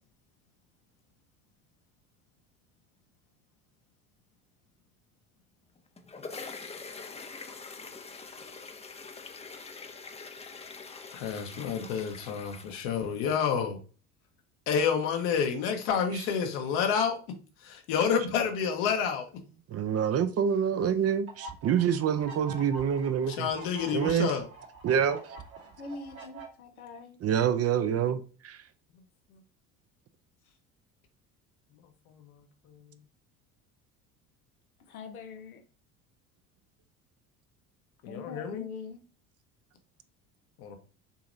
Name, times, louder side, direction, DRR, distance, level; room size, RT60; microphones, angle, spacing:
sound 1, 5.8-13.2, left 4 dB, 15° left, 0.6 m, -44 dB
voice 1, 11.1-13.8 14.7-17.2 17.6-19.3 23.4-24.4 32.1-32.2 38.0-38.6, left 7 dB, 65° left, 1.2 m, -29 dB
voice 2, 19.7-23.5 23.9-24.3 24.8-25.4 27.2-28.6, right 8 dB, 35° right, 0.5 m, -27 dB
sound 2, 21.3-26.5, right 3 dB, 80° right, 2.6 m, -45 dB
voice 3, 25.8-27.2 34.9-35.6 38.1-39.0, left 4 dB, 90° left, 0.8 m, -43 dB
6.7 x 3.0 x 2.6 m
hypercardioid pair, 65°, 42 cm